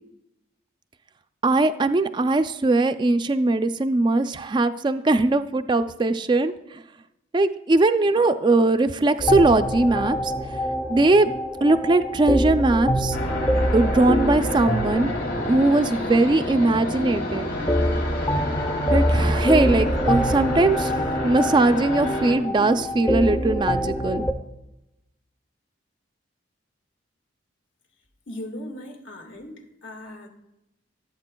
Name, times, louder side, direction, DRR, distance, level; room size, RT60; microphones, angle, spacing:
voice 1, 1.4-6.5 7.3-10.3 10.9-11.3 11.6-13.2 13.7-15.1 15.4-17.5 18.9-24.2, right 2 dB, 25° right, 10 dB, 0.3 m, -20 dB
sound 1, 9.2-24.3, equal, 20° left, 0.6 m, -25 dB
sound 2, 13.1-22.3, left 1 dB, 55° left, 2.4 m, -30 dB
voice 2, 28.3-29.5 29.8-30.3, left 1 dB, 75° left, 3 dB, 1.7 m, -37 dB
15.5 x 8.2 x 2.2 m, 0.89 s
head